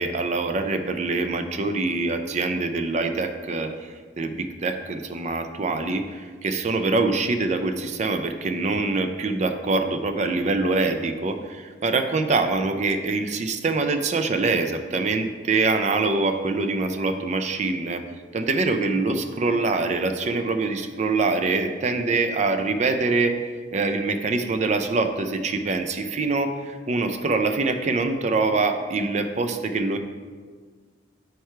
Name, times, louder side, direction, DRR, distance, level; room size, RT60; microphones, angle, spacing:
voice 1, 0.0-18.0 18.3-23.4 23.7-30.0, right 3 dB, 40° right, 7 dB, 0.4 m, -24 dB
4.7 x 4.6 x 4.5 m, 1.5 s
head